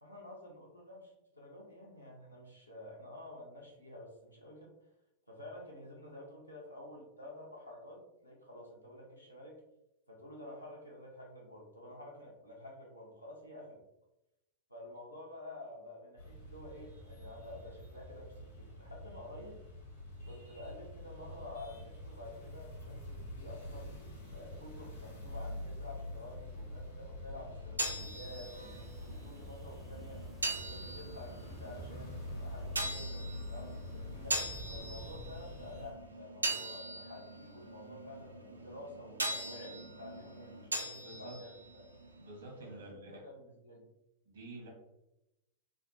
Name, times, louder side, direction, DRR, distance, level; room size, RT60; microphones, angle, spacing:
voice 1, 0.0-4.8 5.3-9.6 10.1-13.8 14.7-19.6 20.2-23.9 24.3-30.2 30.5-41.8 42.6-43.9, left 1 dB, 85° left, -3 dB, 0.8 m, -50 dB
sound 1, 16.2-35.9, left 1 dB, 70° left, 1.2 m, -46 dB
sound 2, 27.4-42.9, right 1 dB, 80° right, 0.4 m, -41 dB
sound 3, 27.8-36.1, equal, ahead, 0.5 m, -55 dB
voice 2, 41.0-41.3 42.2-43.3 44.3-44.7, right 1 dB, 65° right, 0 dB, 0.9 m, -49 dB
3.5 x 2.1 x 2.5 m, 0.89 s
figure-of-eight pair, 90°, 0 cm